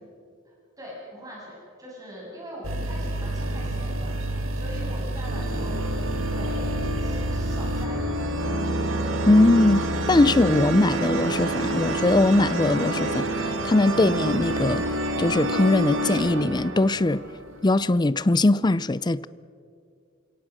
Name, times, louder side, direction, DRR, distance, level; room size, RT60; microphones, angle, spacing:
voice 1, 0.5-8.8, equal, 20° right, 7.8 m, -42 dB
sound 1, 2.6-7.9, right 1 dB, 85° right, 1.8 m, -29 dB
sound 2, 3.4-4.6 5.2-17.9, right 1 dB, 70° right, 2.1 m, -28 dB
voice 2, 9.3-13.2 13.6-14.9 15.2-17.2 17.6-19.3, left 2 dB, 20° left, 0.5 m, -20 dB
29.0 x 17.5 x 6.3 m
head